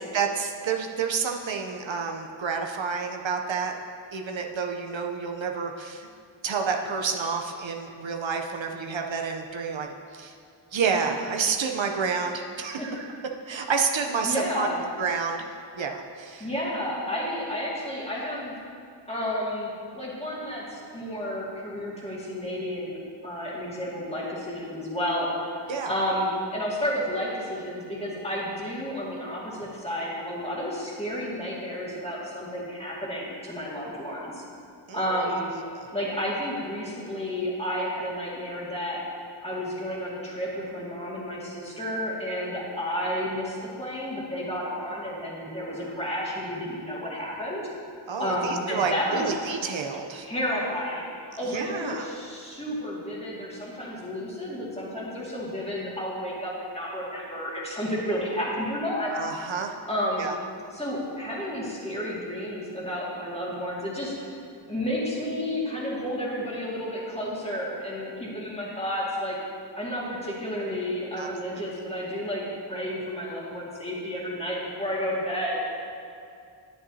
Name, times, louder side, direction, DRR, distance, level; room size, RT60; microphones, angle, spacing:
voice 1, 0.1-3.8 4.1-6.1 6.4-10.3 10.7-13.1 13.5-14.7 15.0-15.4 15.8-16.5 25.7-25.9 34.9-35.9 48.1-50.3 51.5-52.1 59.1-59.8 60.2-60.3 71.2-71.6, right 5 dB, 75° right, 3 dB, 0.7 m, -29 dB
voice 2, 14.2-14.8 16.4-18.6 19.1-23.0 23.2-25.3 25.6-34.4 34.9-35.5 35.9-39.0 39.4-47.7 48.2-49.3 50.2-59.1 59.9-60.3 60.7-64.1 64.7-69.4 69.7-75.6, equal, 15° left, -6 dB, 2.0 m, -31 dB
10.5 x 9.6 x 2.8 m, 2.4 s
wide cardioid pair, 90°, 46 cm